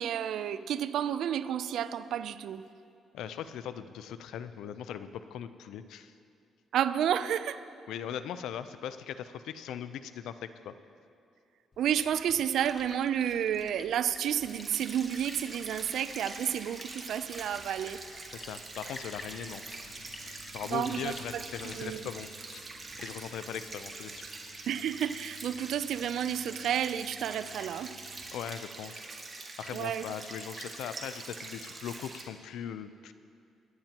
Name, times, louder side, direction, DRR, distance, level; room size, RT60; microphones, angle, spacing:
voice 1, 0.0-2.6 6.7-7.6 11.8-18.0 20.7-22.1 24.7-27.9 29.7-30.1, right 9 dB, 75° right, 13 dB, 0.4 m, -31 dB
voice 2, 3.1-6.1 7.9-10.7 18.3-19.9 20.2-22.6 23.0-24.3 28.3-28.9 29.4-33.1, left 9 dB, 80° left, 12 dB, 0.5 m, -40 dB
Splash splatter, 11.7-22.3, left 3 dB, 40° left, 1.0 m, -51 dB
sound 1, 14.4-32.2, right 3 dB, 35° right, 1.9 m, -44 dB
sound 2, 19.3-28.3, left 4 dB, 15° left, 3.4 m, -58 dB
24.5 x 10.5 x 3.0 m, 2.4 s
cardioid pair, 90°, 0 cm